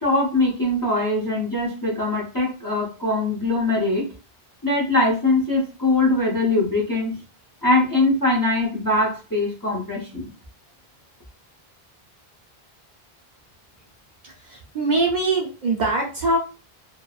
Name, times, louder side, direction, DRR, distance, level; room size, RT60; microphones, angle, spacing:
voice 1, 0.0-4.0 4.6-7.1 7.6-10.3, left 2 dB, 25° left, -1 dB, 0.6 m, -22 dB
voice 2, 14.2-16.4, right 2 dB, 55° right, -1 dB, 0.6 m, -23 dB
2.8 x 2.1 x 2.3 m, 0.33 s
omnidirectional pair, 1.0 m